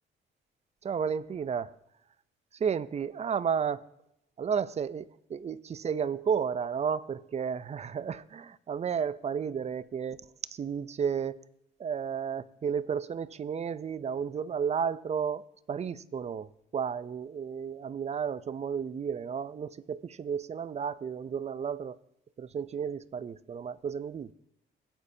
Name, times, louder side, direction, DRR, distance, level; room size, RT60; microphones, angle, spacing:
voice 1, 0.8-1.7 2.6-3.8 4.4-10.2 10.5-11.4 11.8-16.5 16.7-22.0 22.4-24.3, right 7 dB, 35° right, 0.5 m, -32 dB
17.5 x 8.2 x 2.7 m
cardioid pair, 90°, 20 cm